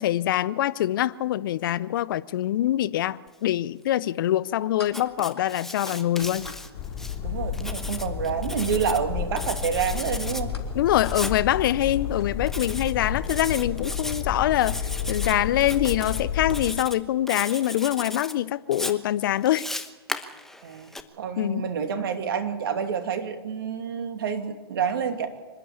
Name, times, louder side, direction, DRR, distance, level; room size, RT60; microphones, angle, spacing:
voice 1, 0.0-6.5 10.7-14.8 15.1-19.7 21.4-21.6, left 13 dB, 55° left, 0.6 m, -24 dB
sound 1, 4.7-7.7 10.5-10.8 11.2-11.3 11.8-12.6 15.2-15.3 16.3-16.4 16.7-16.8 17.5-18.1, left 3 dB, 85° left, 3.3 m, -45 dB
Writing, 4.9-7.2 7.5-9.0 9.4-10.4 11.0-11.4 12.5-12.9 13.2-14.2 14.6-15.3 15.6-16.2 16.5-17.0 17.3-18.3 18.7-21.0, left 1 dB, 5° left, 1.1 m, -36 dB
sound 2, 6.7-16.7, left 7 dB, 35° left, 4.1 m, -31 dB
voice 2, 7.2-10.5 20.6-20.9 21.2-25.3, right 7 dB, 60° right, 2.7 m, -28 dB
25.5 x 11.5 x 8.7 m
hypercardioid pair, 120°, 13 cm